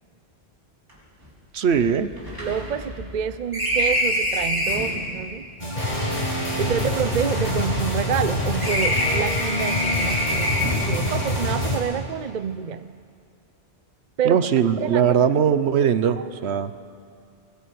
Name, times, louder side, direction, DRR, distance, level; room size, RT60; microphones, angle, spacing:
sound 1, 0.9-1.0 1.2-1.3 1.7-5.0 5.9-8.3 8.6-10.9, left 1 dB, 20° right, 4.6 m, -27 dB
voice 1, 1.5-2.1 14.2-16.7, right 7 dB, 75° right, 12 dB, 1.1 m, -20 dB
voice 2, 2.4-5.5 6.6-12.9 14.2-15.2 15.8-16.3, right 8 dB, 45° right, 13 dB, 0.7 m, -28 dB
sound 2, 5.6-11.8, left 1 dB, 40° left, 5.4 m, -25 dB
20.0 x 19.5 x 9.4 m, 2.3 s
omnidirectional pair, 1.1 m